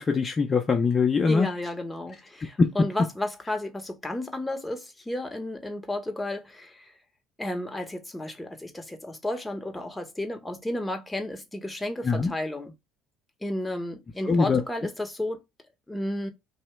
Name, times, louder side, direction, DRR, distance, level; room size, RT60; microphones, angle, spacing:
voice 1, 0.0-1.5 2.6-2.7 12.1-12.3 14.3-14.6, left 4 dB, 30° left, 0.6 m, -22 dB
voice 2, 1.3-6.9 7.4-12.7 13.4-15.4 15.9-16.3, left 1 dB, 10° left, 0.9 m, -32 dB
2.9 x 2.7 x 4.4 m
supercardioid pair, 85°, 0 cm